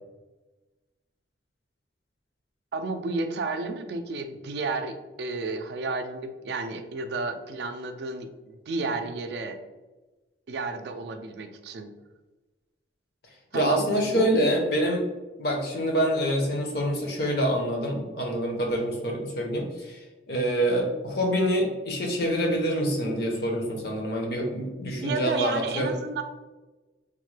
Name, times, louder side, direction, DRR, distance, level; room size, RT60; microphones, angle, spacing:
voice 1, 2.7-9.6 10.5-11.9 13.5-14.3 25.0-26.2, right 3 dB, 65° right, 7 dB, 0.3 m, -32 dB
voice 2, 13.5-15.0 15.4-25.9, equal, 60° left, 1 dB, 0.7 m, -26 dB
3.5 x 2.1 x 3.1 m, 1.2 s
head